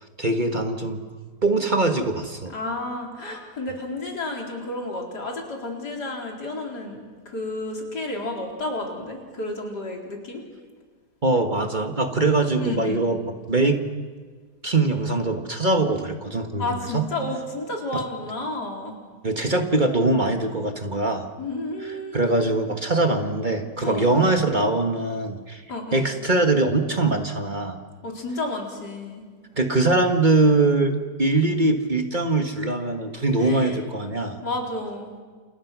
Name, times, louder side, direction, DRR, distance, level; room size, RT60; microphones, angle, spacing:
voice 1, 0.2-1.0 1.4-2.5 11.2-13.2 13.5-13.8 14.6-17.1 19.2-21.2 22.1-25.6 25.9-27.8 29.6-34.4, right 2 dB, 30° right, 5 dB, 1.6 m, -22 dB
voice 2, 2.5-10.4 12.6-13.0 16.6-19.0 21.4-22.5 23.8-24.2 25.7-26.0 28.0-29.2 33.4-33.8 34.4-35.1, left 2 dB, 90° left, 0 dB, 4.7 m, -31 dB
29.5 x 28.5 x 6.1 m, 1.5 s
omnidirectional pair, 1.7 m